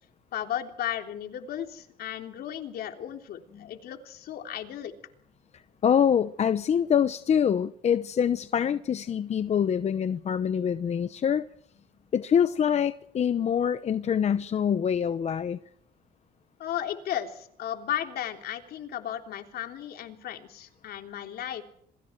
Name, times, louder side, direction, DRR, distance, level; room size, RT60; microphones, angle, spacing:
voice 1, 0.3-4.9 16.6-21.6, left 10 dB, 65° left, 3.5 m, -35 dB
voice 2, 5.8-11.5 12.1-15.6, left 8 dB, 40° left, 0.9 m, -25 dB
27.0 x 24.5 x 4.7 m
cardioid pair, 110°, 17 cm